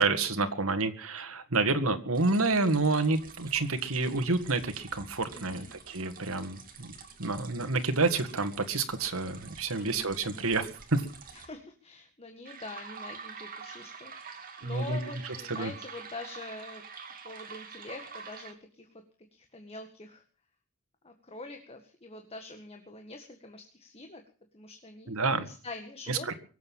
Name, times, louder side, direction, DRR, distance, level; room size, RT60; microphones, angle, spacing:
voice 1, 0.0-6.9 7.2-11.0 14.6-15.0 15.5-15.7 25.1-25.5 26.1-26.3, right 3 dB, 85° right, 8 dB, 2.0 m, -29 dB
sound 1, 2.1-11.5 12.4-18.5, right 5 dB, 40° right, 2.6 m, -47 dB
voice 2, 5.3-5.7 9.8-10.5 11.3-16.8 17.2-18.9 19.3-20.2 21.0-24.2 24.5-26.3, left 2 dB, 30° left, 5 dB, 1.8 m, -45 dB
23.5 x 8.2 x 7.3 m, 0.40 s
head